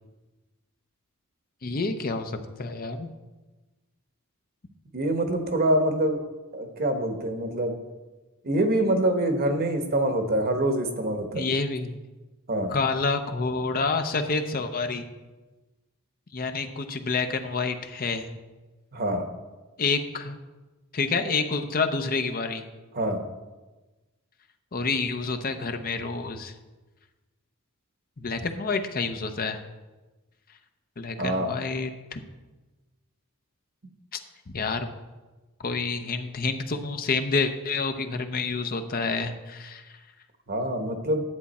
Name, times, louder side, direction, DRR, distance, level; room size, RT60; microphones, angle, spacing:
voice 1, 1.6-3.1 11.3-12.0 12.7-15.1 16.3-18.3 19.8-20.4 20.9-22.6 24.7-26.5 28.2-29.6 31.0-32.2 34.1-34.2 34.5-34.9 35.6-40.0, left 4 dB, 45° left, 7 dB, 0.7 m, -28 dB
voice 2, 4.9-6.2 6.5-7.7 8.4-11.5 12.5-12.7 18.9-19.3 22.9-23.2 31.2-31.5 40.5-41.2, right 1 dB, 45° right, 5 dB, 1.1 m, -25 dB
10.5 x 8.2 x 4.2 m, 1.2 s
head